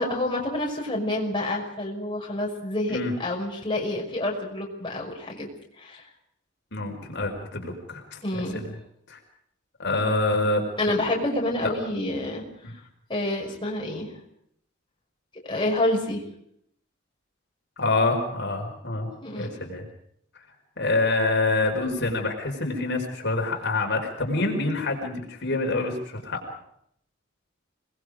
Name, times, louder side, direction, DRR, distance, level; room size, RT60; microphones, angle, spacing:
voice 1, 0.0-5.5 5.8-6.0 8.2-8.6 10.8-12.4 13.1-14.1 15.4-16.2 19.2-19.6, left 1 dB, 25° left, -1 dB, 5.7 m, -28 dB
voice 2, 6.7-8.7 9.1-9.2 9.8-10.6 11.6-11.7 17.8-19.9 20.8-26.5, left 2 dB, 60° left, 2 dB, 5.0 m, -26 dB
28.0 x 21.0 x 5.1 m, 0.70 s
head